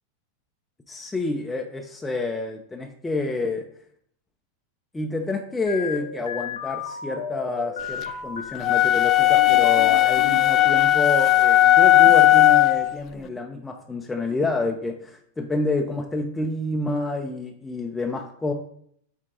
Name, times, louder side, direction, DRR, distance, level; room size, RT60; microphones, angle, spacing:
voice 1, 0.9-3.6 4.9-18.5, left 2 dB, 10° left, 1 dB, 0.7 m, -28 dB
sound 1, 5.7-8.7 9.2-10.8, left 5 dB, 65° left, 1.1 m, -34 dB
sound 2, 8.6-12.9, left 14 dB, 35° left, 0.4 m, -16 dB
8.7 x 3.7 x 3.8 m, 0.65 s
figure-of-eight pair, 90°, 0 cm